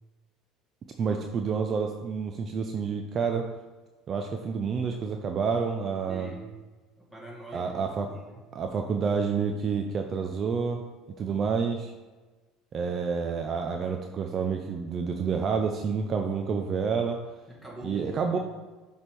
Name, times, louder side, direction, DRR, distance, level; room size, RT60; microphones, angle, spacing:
voice 1, 1.0-3.5 4.1-6.3 7.5-8.1 8.5-10.8 11.2-11.9 12.7-17.2 17.8-18.4, right 5 dB, 40° right, 4 dB, 0.5 m, -29 dB
voice 2, 6.1-6.5 7.0-8.4 17.5-18.4, right 1 dB, ahead, -4 dB, 2.0 m, -44 dB
6.6 x 3.4 x 4.6 m, 1.2 s
supercardioid pair, 85°, 0 cm